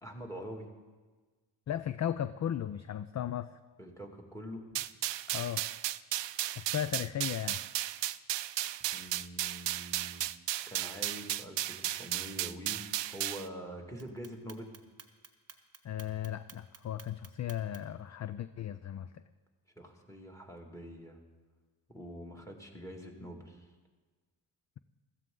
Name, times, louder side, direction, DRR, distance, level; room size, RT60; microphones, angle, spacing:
voice 1, 0.0-0.7 3.8-4.8 8.9-10.3 10.7-14.7 19.8-21.2 21.9-23.7, equal, 5° left, 2 dB, 2.1 m, -45 dB
voice 2, 1.7-3.5 5.3-5.6 6.6-7.6 15.8-19.2, left 10 dB, 40° left, 13 dB, 0.4 m, -36 dB
sound 1, 4.8-13.5, right 14 dB, 65° right, 0.5 m, -35 dB
Clock, 14.0-18.0, right 5 dB, 30° right, 1.2 m, -52 dB
16.0 x 13.5 x 3.8 m, 1.3 s
cardioid pair, 85°, 48 cm